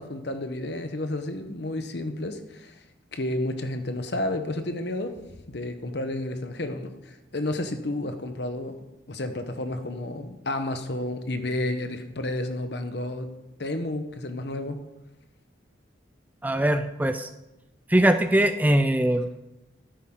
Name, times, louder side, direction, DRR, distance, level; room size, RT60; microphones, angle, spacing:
voice 1, 0.0-2.8 3.1-5.2 5.5-13.3 13.6-14.8, left 1 dB, 60° left, 8 dB, 1.0 m, -31 dB
voice 2, 16.4-17.3 17.9-19.3, right 1 dB, 10° right, 9 dB, 0.4 m, -21 dB
13.0 x 10.5 x 3.8 m, 0.96 s
head